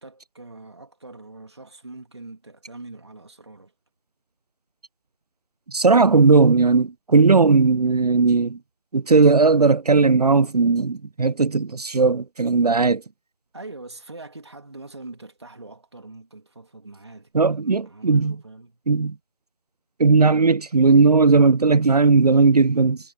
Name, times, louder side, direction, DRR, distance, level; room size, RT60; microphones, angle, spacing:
voice 1, 0.0-3.7 13.5-18.8, right 2 dB, 40° right, 2.9 m, -42 dB
voice 2, 5.7-8.6 8.9-13.0 17.3-18.4 18.9-19.1 20.0-23.0, right 4 dB, 70° right, 0.5 m, -17 dB
figure-of-eight pair, 175°, 21 cm